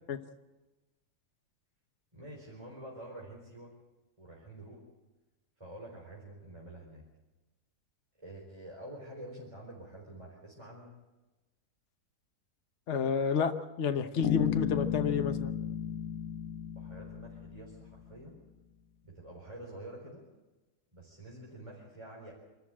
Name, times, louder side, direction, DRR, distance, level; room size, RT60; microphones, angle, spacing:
voice 1, 2.1-3.7 4.2-4.8 5.6-7.0 8.2-10.9 16.8-18.4 19.0-20.2 20.9-22.3, right 1 dB, 20° right, -3 dB, 4.2 m, -48 dB
voice 2, 12.9-15.5, left 6 dB, 50° left, 7 dB, 1.2 m, -30 dB
Bass guitar, 14.2-18.0, left 8 dB, 80° left, 1.5 m, -34 dB
26.0 x 13.5 x 8.8 m, 1.1 s
omnidirectional pair, 1.7 m